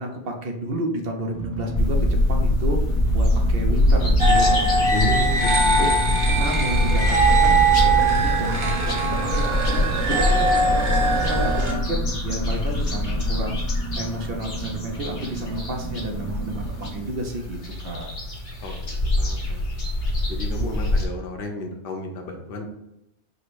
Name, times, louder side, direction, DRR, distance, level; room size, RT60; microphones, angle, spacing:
voice 1, 0.0-6.0 6.3-9.1 9.3-18.1, right 1 dB, 65° right, 2 dB, 0.8 m, -31 dB
sound 1, 1.3-17.0, right 3 dB, 20° left, 0.6 m, -32 dB
sound 2, 1.7-21.1, left 1 dB, 80° left, 1.5 m, -24 dB
sound 3, 4.2-11.7, right 3 dB, 30° right, 0.7 m, -21 dB
voice 2, 4.9-5.4 5.8-5.9 18.6-18.7 19.2-19.6 20.3-22.7, left 2 dB, 60° left, 2 dB, 0.9 m, -31 dB
5.0 x 2.0 x 4.6 m, 0.85 s
omnidirectional pair, 1.1 m